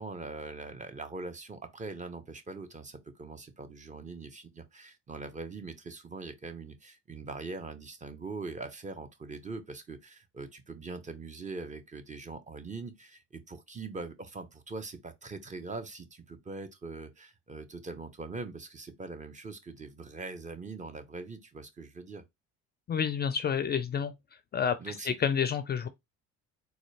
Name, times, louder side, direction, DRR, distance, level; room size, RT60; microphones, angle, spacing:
voice 1, 0.0-22.2 24.8-25.2, right 3 dB, 25° right, 0.7 m, -42 dB
voice 2, 22.9-24.1 24.5-25.9, left 7 dB, 30° left, 0.4 m, -29 dB
3.9 x 2.3 x 3.2 m
supercardioid pair, 90°, 32 cm